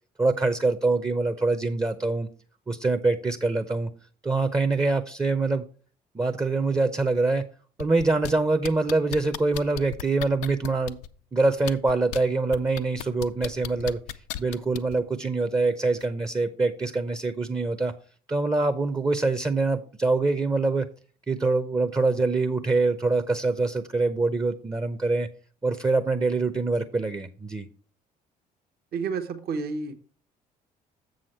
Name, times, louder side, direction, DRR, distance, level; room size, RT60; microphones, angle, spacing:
voice 1, 0.2-2.3 2.7-3.9 4.2-5.6 6.1-7.5 7.8-10.9 11.3-14.0 14.4-17.9 18.3-20.9 21.3-25.3 25.6-27.7, right 3 dB, 15° right, 9 dB, 0.7 m, -24 dB
sound 1, 7.8-8.3 8.6-11.1 11.6-12.2 12.5-15.0 16.0-16.1, left 13 dB, 70° left, 0.5 m, -34 dB
voice 2, 28.9-29.9, right 5 dB, 50° right, 6 dB, 1.0 m, -30 dB
7.5 x 6.3 x 4.3 m, 0.41 s
figure-of-eight pair, 50°, 20 cm